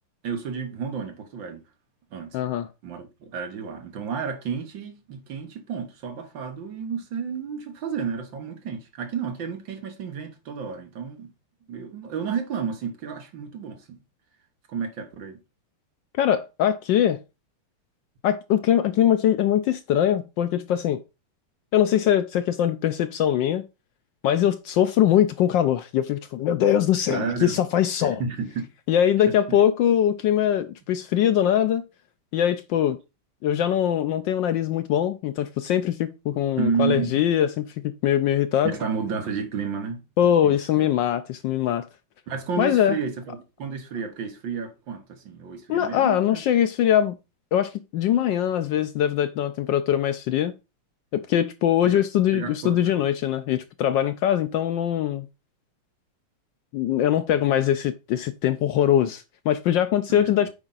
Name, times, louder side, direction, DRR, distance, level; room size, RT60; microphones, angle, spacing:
voice 1, 0.2-1.6 2.1-2.4 2.8-11.3 11.7-14.0 14.7-15.4 27.1-27.6 28.2-28.7 29.2-29.6 36.6-37.2 38.6-40.0 40.4-40.9 42.3-46.4 51.8-52.0 52.3-53.0 60.1-60.5, right 6 dB, 60° right, 1.9 m, -31 dB
voice 2, 2.3-2.7 16.2-17.2 18.2-21.0 21.7-23.7 24.2-28.2 28.9-31.8 32.3-33.0 33.4-37.7 38.0-38.7 40.2-41.9 42.6-43.0 45.7-47.1 47.5-50.5 51.1-55.3 56.7-60.5, left 10 dB, 75° left, 1.1 m, -22 dB
8.7 x 5.0 x 4.0 m
omnidirectional pair, 2.3 m